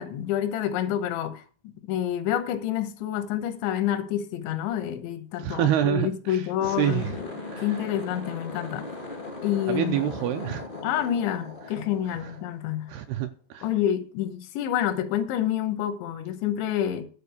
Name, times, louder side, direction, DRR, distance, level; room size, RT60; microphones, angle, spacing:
voice 1, 0.0-1.4 1.9-8.9 9.4-10.0 10.8-12.9 13.6-17.1, left 10 dB, 90° left, 3.3 m, -28 dB
voice 2, 5.4-7.1 7.5-7.7 9.7-10.6 12.2-12.3 12.9-13.7, right 11 dB, 80° right, 2.4 m, -27 dB
sound 1, 6.5-13.0, left 3 dB, 40° left, 0.6 m, -38 dB
12.0 x 4.5 x 8.3 m
omnidirectional pair, 5.1 m